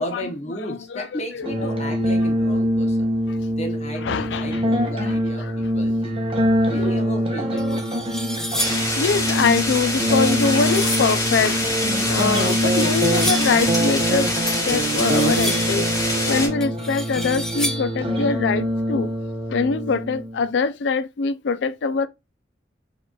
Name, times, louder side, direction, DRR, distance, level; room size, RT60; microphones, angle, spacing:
voice 1, 0.0-3.1 3.6-6.2 6.7-7.8, equal, 35° left, 0.9 m, -34 dB
sound 1, 1.4-20.4, equal, 30° right, 0.8 m, -24 dB
voice 2, 4.0-4.6 5.4-5.7 6.4-6.7 9.0-11.6 11.9-15.9 16.2-19.1 19.5-22.1, left 5 dB, 70° left, 0.4 m, -23 dB
sound 2, 7.1-7.2 7.6-9.0 9.8-11.2 12.2-13.6 14.5-15.8 16.6-18.0, equal, 5° left, 0.4 m, -31 dB
sound 3, 8.6-16.5, left 1 dB, 20° left, 2.1 m, -25 dB
5.1 x 3.0 x 2.3 m
head